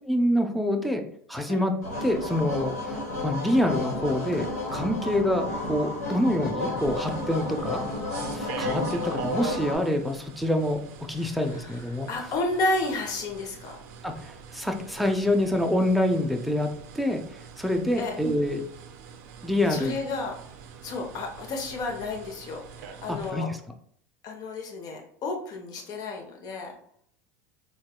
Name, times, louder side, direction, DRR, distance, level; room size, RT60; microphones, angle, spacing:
voice 1, 0.0-1.0 1.3-1.7 2.0-3.0 3.2-7.8 8.3-10.8 11.1-12.1 14.0-17.2 17.6-18.6 19.4-19.9 23.1-23.6, left 1 dB, ahead, 4 dB, 0.5 m, -26 dB
sound 1, 1.8-9.7, left 2 dB, 90° left, 1.2 m, -32 dB
sound 2, 6.8-23.3, right 6 dB, 70° right, 0.4 m, -43 dB
voice 2, 11.2-13.8 18.0-18.2 19.7-20.3 20.8-23.5 24.2-26.8, left 2 dB, 50° left, 2 dB, 0.8 m, -32 dB
4.0 x 2.3 x 2.2 m, 0.65 s
hypercardioid pair, 90°, 9 cm